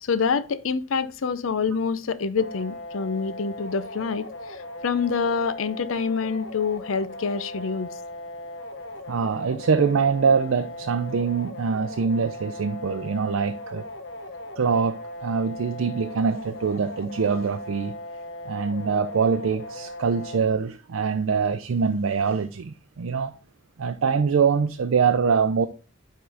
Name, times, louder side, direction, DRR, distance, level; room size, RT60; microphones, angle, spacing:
voice 1, 0.0-7.9, left 5 dB, 80° left, 0.5 m, -26 dB
sound 1, 2.4-20.4, left 1 dB, 60° left, 1.0 m, -38 dB
voice 2, 9.1-13.8 14.6-18.0 18.4-23.4 23.8-25.7, right 5 dB, 85° right, 0.5 m, -24 dB
9.4 x 3.8 x 3.4 m
head